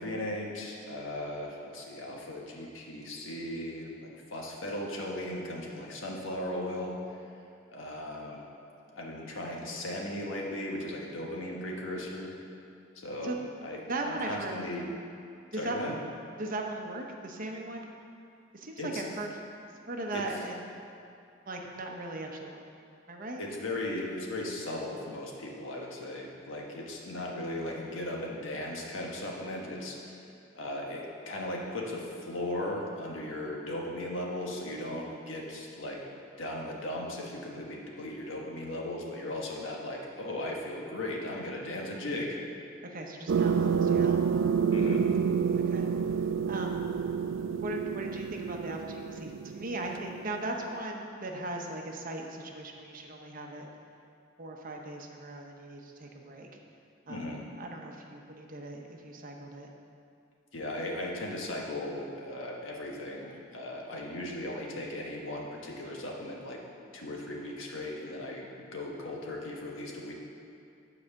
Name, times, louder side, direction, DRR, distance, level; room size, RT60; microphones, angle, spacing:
voice 1, 0.0-7.0 7.7-8.4 8.8-12.3 12.9-13.4 13.6-14.9 15.6-15.9 18.8-19.0 20.1-20.2 23.4-30.2 30.5-36.0 36.4-42.4 44.7-45.1 57.1-57.4 60.5-66.6 66.9-68.5 68.7-70.1, left 1 dB, 85° left, -1 dB, 1.4 m, -37 dB
voice 2, 13.9-14.5 15.5-16.0 16.4-17.9 18.5-19.3 19.9-20.6 21.5-22.6 23.1-23.4 42.8-44.3 45.6-45.9 46.5-46.9 47.6-53.7 54.4-56.6 57.1-59.7, right 2 dB, 45° right, 2 dB, 0.9 m, -38 dB
sound 1, 43.3-50.5, right 6 dB, 75° right, 0.4 m, -28 dB
9.8 x 4.9 x 6.5 m, 2.5 s
head